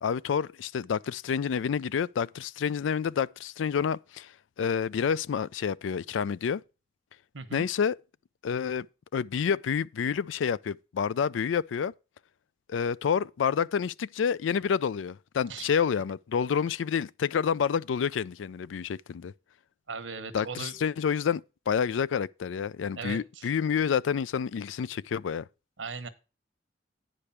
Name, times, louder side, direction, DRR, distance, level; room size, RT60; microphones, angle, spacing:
voice 1, 0.0-4.3 4.6-6.6 7.5-8.0 8.4-8.9 9.1-11.9 12.7-19.3 20.3-25.5, left 7 dB, 85° left, 0.4 m, -28 dB
voice 2, 7.3-7.6 15.5-15.7 19.9-20.7 23.0-23.5 25.8-26.1, right 4 dB, 85° right, 1.1 m, -38 dB
9.8 x 5.1 x 5.8 m
head